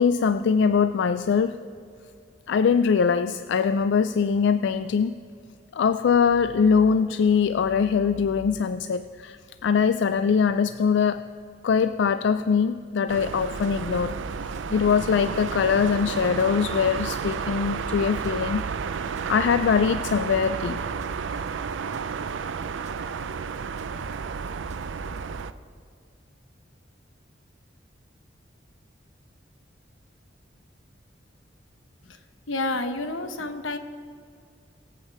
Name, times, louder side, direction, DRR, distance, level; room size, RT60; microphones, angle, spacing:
voice 1, 0.0-1.6 2.5-5.2 5.7-11.2 11.6-14.2 14.7-18.7 19.3-20.8, left 6 dB, 65° left, 12 dB, 0.3 m, -22 dB
sound 1, 13.1-25.5, right 6 dB, 80° right, 0.5 m, -32 dB
sound 2, 13.5-25.5, equal, 40° right, 1.2 m, -46 dB
voice 2, 32.5-33.8, left 2 dB, 85° left, 8 dB, 1.0 m, -29 dB
23.0 x 8.1 x 4.6 m, 2.3 s
head